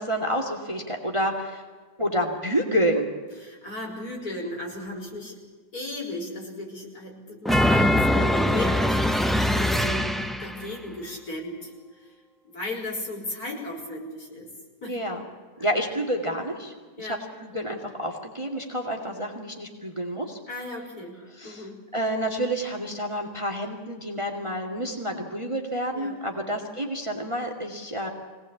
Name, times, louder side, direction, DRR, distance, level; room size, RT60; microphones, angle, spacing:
voice 1, 0.0-1.6 2.0-3.1 14.9-15.2 15.6-20.4 21.4-21.7 21.9-28.1, equal, 15° right, 3 dB, 2.3 m, -29 dB
voice 2, 3.4-5.4 5.7-11.7 12.0-12.1 12.4-14.5 14.8-15.0 17.0-17.2 20.5-21.7 25.9-26.5, left 1 dB, 55° left, 0 dB, 5.8 m, -36 dB
sound 1, 7.4-10.6, left 1 dB, ahead, 0.4 m, -22 dB
24.0 x 18.5 x 8.6 m, 1.4 s
omnidirectional pair, 1.9 m